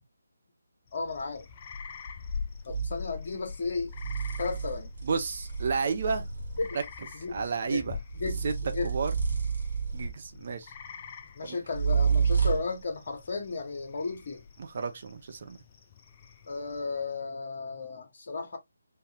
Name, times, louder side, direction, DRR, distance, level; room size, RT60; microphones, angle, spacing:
voice 1, 0.9-1.5 2.7-3.9 4.4-4.9 6.6-6.8 7.1-7.8 8.1-8.9 11.3-14.4 16.5-18.6, left 4 dB, 45° left, 1.3 m, -34 dB
sound 1, 0.9-17.1, left 5 dB, 30° left, 0.6 m, -44 dB
sound 2, 2.7-3.0 3.9-6.9 8.1-10.4 11.7-12.8, right 6 dB, 60° right, 1.6 m, -30 dB
voice 2, 5.0-6.3 7.3-8.0 8.4-8.5 8.8-9.1 9.9-10.7 11.4-11.6 14.6-15.6, right 5 dB, 40° right, 0.7 m, -31 dB
4.0 x 2.7 x 2.9 m
figure-of-eight pair, 150°, 0 cm